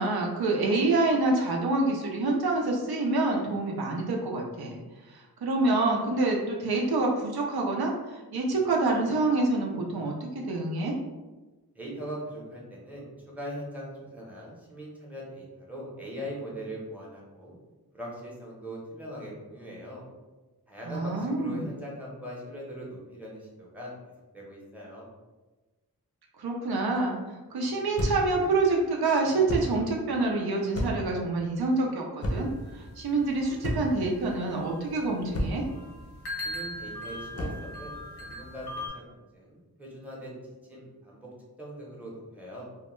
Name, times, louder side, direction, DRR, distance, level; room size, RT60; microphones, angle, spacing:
voice 1, 0.0-4.8 5.1-10.9 20.9-21.7 26.4-32.5 32.7-35.6, right 2 dB, 75° right, -1 dB, 0.5 m, -27 dB
voice 2, 11.7-17.6 17.9-20.0 20.7-23.9 24.3-25.1 36.4-41.3 41.6-42.6, equal, 5° right, -4 dB, 0.7 m, -41 dB
sound 1, 28.0-28.4 29.5-29.8 30.7-31.2 32.2-32.6 33.6-34.0 35.3-35.7 37.3-37.7, equal, 40° left, 0.5 m, -30 dB
sound 2, 32.3-38.9, left 1 dB, 85° left, 0.8 m, -41 dB
2.2 x 2.1 x 2.9 m, 1.2 s
wide cardioid pair, 75°, 38 cm